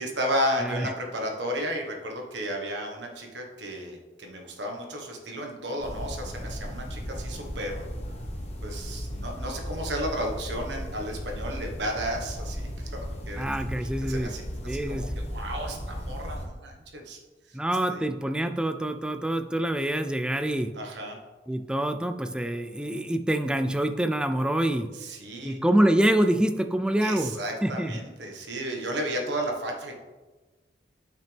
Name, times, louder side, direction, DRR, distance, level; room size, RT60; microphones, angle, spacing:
voice 1, 0.0-7.8 8.6-12.9 13.3-13.4 14.1-17.2 17.5-17.6 17.9-18.0 20.7-21.2 24.9-25.6 27.0-29.9, equal, 85° right, 1 dB, 1.4 m, -33 dB
sound 1, 5.8-16.5, equal, 35° left, 1.2 m, -36 dB
voice 2, 13.4-14.3 14.7-15.1 17.5-20.7 21.5-24.9 25.4-27.3 27.6-27.9, right 1 dB, 5° right, 7 dB, 0.3 m, -26 dB
9.0 x 5.9 x 3.5 m, 1.2 s
head